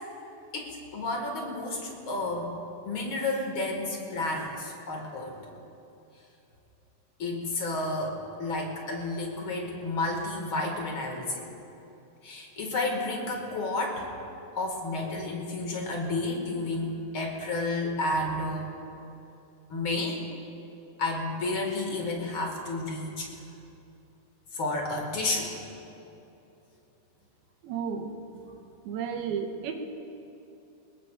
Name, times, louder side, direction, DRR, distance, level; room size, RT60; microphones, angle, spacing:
voice 1, 0.5-2.5 2.8-5.4 7.2-11.4 12.2-14.1 14.6-18.7 19.7-20.2 21.0-23.3 24.5-25.5, left 2 dB, 40° left, 0 dB, 2.2 m, -31 dB
voice 2, 27.6-28.1 28.9-29.7, right 7 dB, 90° right, 3 dB, 2.9 m, -32 dB
22.5 x 20.0 x 2.5 m, 2.9 s
omnidirectional pair, 4.3 m